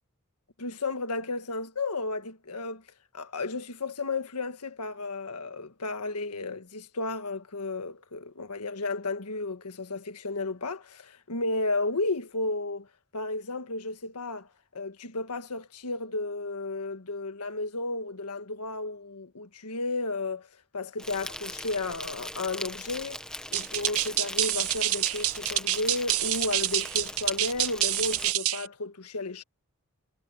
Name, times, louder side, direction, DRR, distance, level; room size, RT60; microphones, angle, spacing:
voice 1, 0.6-2.8 3.1-12.9 13.1-14.5 14.7-20.5 20.7-23.2 23.5-29.4, left 3 dB, 85° left, 1.6 m, -33 dB
Insect, 21.0-28.3, left 1 dB, 5° left, 1.2 m, -40 dB
sound 1, 23.5-28.7, right 16 dB, 70° right, 0.6 m, -27 dB
head